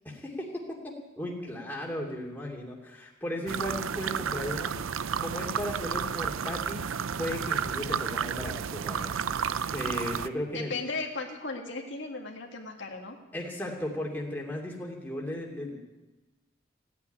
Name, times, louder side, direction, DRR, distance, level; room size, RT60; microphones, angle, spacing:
voice 1, 0.0-4.7 5.2-6.9 7.2-9.1 9.7-10.7 13.3-15.8, left 1 dB, 10° left, -2 dB, 2.6 m, -36 dB
sound 1, 3.5-10.3, right 7 dB, 90° right, 0.5 m, -32 dB
voice 2, 10.5-13.2, left 3 dB, 65° left, 1 dB, 1.8 m, -36 dB
16.0 x 8.5 x 10.0 m, 1.1 s
head